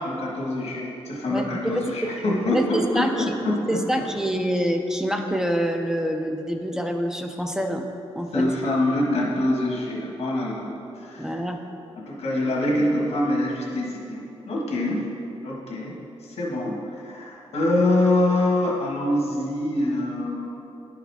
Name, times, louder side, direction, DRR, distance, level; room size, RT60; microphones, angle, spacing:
voice 1, 0.0-4.0 8.3-10.7 10.9-11.3 12.0-15.1 15.4-15.9 16.2-20.5, left 1 dB, 80° left, -2 dB, 1.3 m, -25 dB
voice 2, 1.3-1.9 2.5-3.3 3.7-7.9 8.2-8.4 11.2-11.6, equal, 5° right, 4 dB, 0.4 m, -26 dB
10.5 x 4.8 x 3.4 m, 2.8 s
wide cardioid pair, 160°, 11 cm